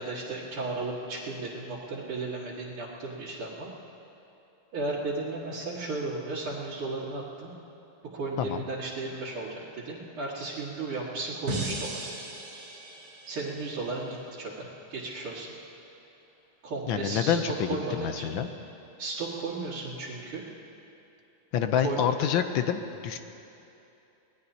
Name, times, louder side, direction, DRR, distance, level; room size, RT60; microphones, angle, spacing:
voice 1, 0.0-3.7 4.7-7.5 8.1-12.1 13.3-15.5 16.6-18.4 19.0-20.4 21.8-22.0, right 3 dB, 70° right, -7 dB, 2.6 m, -35 dB
sound 1, 11.5-14.6, right 2 dB, 45° right, 2.0 m, -37 dB
voice 2, 16.9-18.5 21.5-23.2, left 8 dB, 70° left, 8 dB, 1.4 m, -27 dB
24.0 x 18.5 x 2.8 m, 2.8 s
omnidirectional pair, 2.4 m